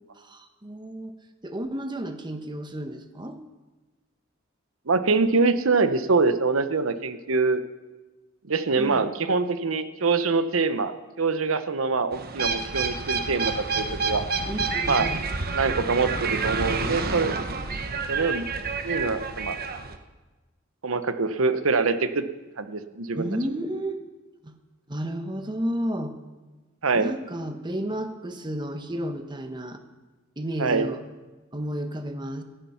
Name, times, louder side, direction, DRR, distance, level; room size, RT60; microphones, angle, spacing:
voice 1, 0.2-3.4 8.8-9.1 14.5-15.2 23.1-24.0 24.4-24.5 24.9-26.1 26.9-29.8 30.4-31.0 31.5-32.4, right 1 dB, 20° right, 7 dB, 1.2 m, -32 dB
voice 2, 4.9-7.6 8.5-14.2 14.9-15.1 15.5-17.3 18.1-18.4 18.8-19.6 20.8-22.2 22.6-23.3 26.8-27.1 30.6-30.9, right 4 dB, 85° right, 11 dB, 0.9 m, -24 dB
sound 1, 12.1-20.0, right 4 dB, 50° right, 1.1 m, -29 dB
14.5 x 13.5 x 5.8 m, 1.2 s
head